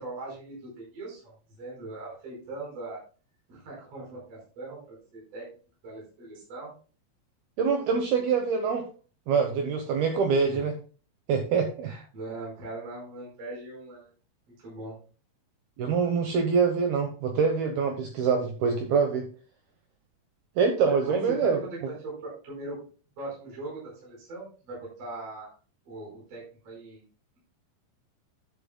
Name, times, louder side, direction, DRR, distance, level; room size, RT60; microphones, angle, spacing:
voice 1, 0.0-3.0 3.5-5.4 5.8-6.7 10.5-10.6 11.8-14.1 14.6-15.0 20.8-21.8 22.0-22.8 23.2-25.5 25.9-27.0, right 2 dB, 30° right, -4 dB, 5.5 m, -40 dB
voice 2, 7.6-8.9 9.3-10.8 11.3-11.9 15.8-19.3 20.6-21.6, right 5 dB, 75° right, 4 dB, 2.3 m, -25 dB
11.0 x 11.0 x 2.2 m, 0.36 s
omnidirectional pair, 5.7 m